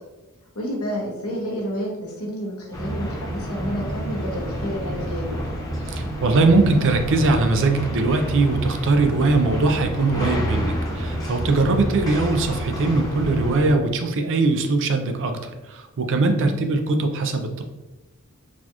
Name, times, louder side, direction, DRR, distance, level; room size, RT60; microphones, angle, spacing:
voice 1, 0.5-5.4 16.3-16.6, equal, 70° left, -2 dB, 1.1 m, -30 dB
sound 1, 2.7-13.7, equal, 15° left, 0.6 m, -29 dB
voice 2, 5.9-17.6, right 3 dB, 55° right, 6 dB, 0.4 m, -21 dB
4.1 x 2.4 x 2.8 m, 1.1 s
head